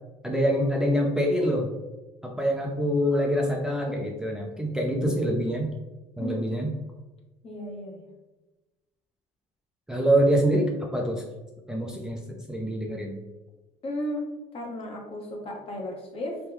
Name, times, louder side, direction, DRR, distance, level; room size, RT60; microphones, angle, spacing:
voice 1, 0.2-1.7 2.2-5.7 6.2-6.7 9.9-11.2 11.7-12.2 12.5-13.2, equal, 5° right, -1 dB, 0.5 m, -25 dB
voice 2, 6.2-6.7 7.4-8.0 13.8-14.3 14.5-16.4, left 1 dB, 40° left, 1 dB, 0.9 m, -34 dB
3.1 x 2.1 x 3.4 m, 1.1 s
supercardioid pair, 85°, 14 cm